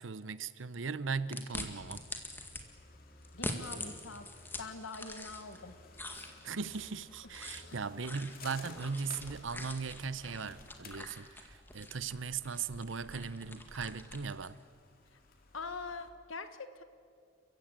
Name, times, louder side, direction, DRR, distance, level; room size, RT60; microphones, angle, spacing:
voice 1, 0.0-2.0 6.4-14.6, right 5 dB, 65° right, 0.8 m, -38 dB
sound 1, 1.3-2.6 3.2-5.6 5.9-14.6, left 1 dB, 10° left, 1.9 m, -45 dB
sound 2, 1.5-16.1, left 3 dB, 45° left, 2.6 m, -56 dB
voice 2, 3.3-4.3 4.6-5.7 7.4-7.5 15.5-16.8, left 4 dB, 75° left, 1.3 m, -43 dB
30.0 x 15.5 x 8.9 m
head